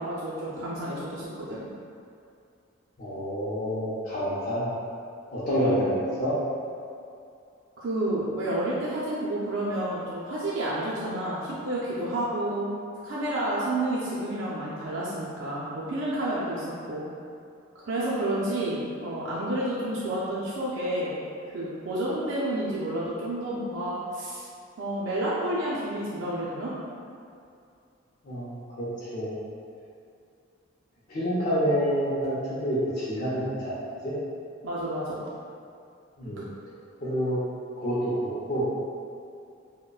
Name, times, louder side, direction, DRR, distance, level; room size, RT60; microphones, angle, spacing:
voice 1, 0.0-1.7 7.8-12.7 13.0-17.1 17.7-21.1 21.5-24.5 24.8-26.7 34.6-35.3, right 1 dB, 75° right, -7 dB, 0.5 m, -30 dB
voice 2, 3.0-4.7 5.3-6.3 28.2-29.4 31.1-34.1 36.2-36.5 37.0-37.4 37.8-38.7, equal, 45° left, -12 dB, 0.6 m, -28 dB
5.0 x 2.1 x 2.3 m, 2.5 s
head